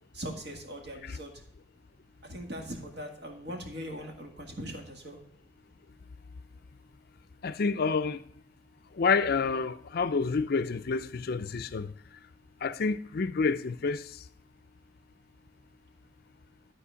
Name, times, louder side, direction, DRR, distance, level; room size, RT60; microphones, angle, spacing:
voice 1, 0.1-1.3 2.3-5.2, equal, 60° right, 1.9 m, -40 dB
voice 2, 7.4-8.2 8.9-11.9 12.6-14.2, left 4 dB, 50° left, 0.4 m, -29 dB
13.0 x 4.4 x 5.6 m
head